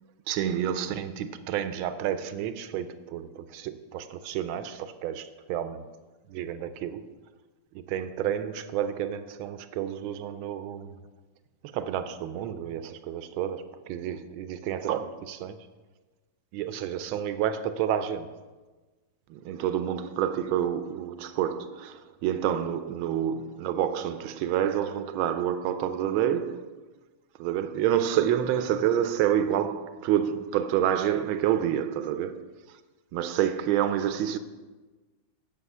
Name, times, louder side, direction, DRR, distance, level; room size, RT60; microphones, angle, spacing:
voice 1, 0.3-5.9 6.3-7.1 7.9-11.0 11.6-15.7 16.5-18.3 19.3-26.8 27.4-32.8 33.1-34.4, right 10 dB, 75° right, 1.3 m, -29 dB
9.2 x 6.7 x 5.4 m
omnidirectional pair, 2.4 m